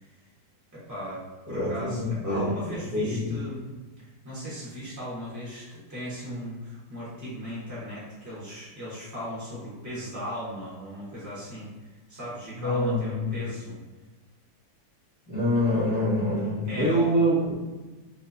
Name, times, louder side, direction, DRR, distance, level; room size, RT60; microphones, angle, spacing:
voice 1, 0.7-3.7 4.2-11.7 12.1-13.8 16.7-17.1, equal, 10° right, -9 dB, 1.2 m, -37 dB
voice 2, 1.5-2.5 2.9-3.3 12.5-13.3 15.3-17.7, equal, 15° left, -9 dB, 1.1 m, -25 dB
3.4 x 3.3 x 2.6 m, 1.2 s
omnidirectional pair, 2.1 m